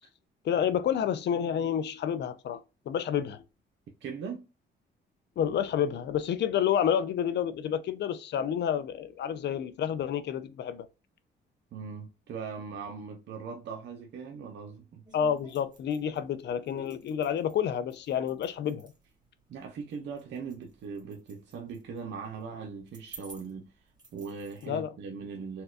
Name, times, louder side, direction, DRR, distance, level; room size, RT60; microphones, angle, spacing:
voice 1, 0.4-2.6 2.9-3.4 5.4-10.9 15.1-18.9 24.6-24.9, left 9 dB, 60° left, 0.5 m, -29 dB
voice 2, 4.0-4.4 11.7-15.0 19.5-25.6, right 5 dB, 65° right, 0.7 m, -40 dB
sound 1, 15.1-24.7, right 3 dB, 20° right, 1.6 m, -55 dB
4.2 x 2.2 x 2.4 m
cardioid pair, 90°, 20 cm